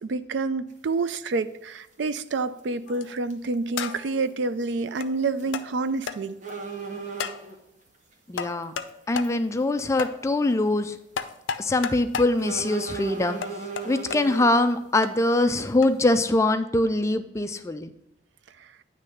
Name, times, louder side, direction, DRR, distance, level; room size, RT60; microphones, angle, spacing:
voice 1, 0.0-6.4, right 3 dB, 65° right, 0.4 m, -28 dB
sound 1, 0.7-0.8 2.4-2.6 2.9-3.0 3.3-3.4 5.3-5.6 5.9-6.0 6.4-7.6 8.6-8.8 9.2-9.3 9.8-10.0 10.5-10.6 12.4-14.5, right 5 dB, 40° right, 0.9 m, -36 dB
sound 2, 2.9-3.2 3.8-4.2 5.0-5.1 5.5-5.7 6.1-6.2 7.2-7.4 8.4-8.9 9.2-9.3 10.0-10.1 11.2-12.3 13.4-14.2 15.0-15.1 15.8-16.0, left 6 dB, 75° left, 0.5 m, -32 dB
voice 2, 8.3-8.7 9.1-10.9 11.6-13.4 13.8-17.9, left 2 dB, 15° left, 0.3 m, -23 dB
9.8 x 3.3 x 5.5 m
head